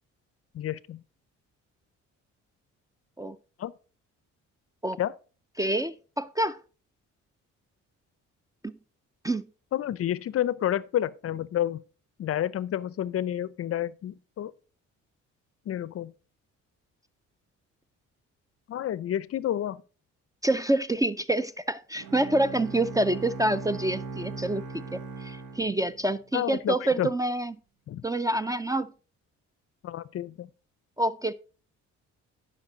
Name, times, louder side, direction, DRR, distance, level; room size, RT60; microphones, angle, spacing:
voice 1, 0.5-1.0 3.6-3.7 5.0-5.1 9.7-11.8 12.2-14.5 15.7-16.1 18.7-19.8 26.3-27.1 27.9-28.0 29.8-30.5, left 11 dB, 50° left, 0.5 m, -30 dB
voice 2, 5.6-6.6 8.6-8.7 9.2-9.4 20.4-27.5 28.0-28.9 31.0-31.3, right 1 dB, 10° right, 0.4 m, -27 dB
Bowed string instrument, 22.0-26.4, right 4 dB, 90° right, 1.2 m, -39 dB
10.5 x 5.7 x 3.9 m
cardioid pair, 90°, 30 cm